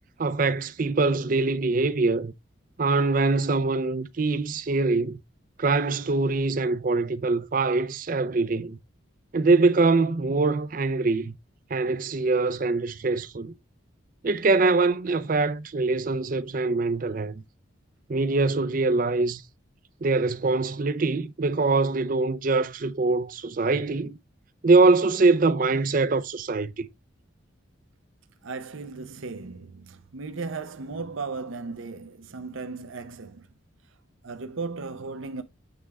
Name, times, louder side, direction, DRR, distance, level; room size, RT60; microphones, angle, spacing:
voice 1, 0.2-2.3 2.8-5.2 5.6-8.8 9.3-11.4 11.7-13.5 14.2-17.4 18.1-19.4 20.0-24.2 24.6-26.9, right 3 dB, 40° right, 0.5 m, -23 dB
voice 2, 28.4-33.4 34.2-35.4, right 4 dB, 80° right, 0.8 m, -36 dB
8.8 x 3.6 x 3.4 m
head